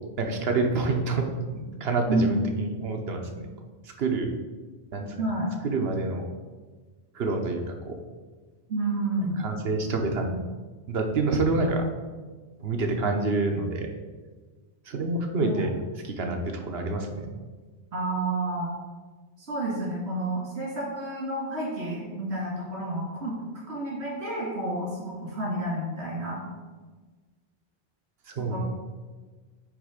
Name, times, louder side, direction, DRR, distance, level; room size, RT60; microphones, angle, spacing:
voice 1, 0.2-3.5 3.8-4.3 4.9-5.3 5.6-6.3 7.1-8.0 9.4-10.4 10.9-11.9 12.6-13.9 14.9-15.8 16.0-17.3 28.3-28.6, right 3 dB, 70° right, 3 dB, 1.0 m, -27 dB
voice 2, 5.2-5.5 8.7-9.4 15.4-15.7 17.9-18.7 19.4-23.3 23.7-26.4 28.4-28.6, right 2 dB, 85° right, -5 dB, 2.1 m, -30 dB
8.7 x 3.2 x 5.0 m, 1.4 s
omnidirectional pair, 1.1 m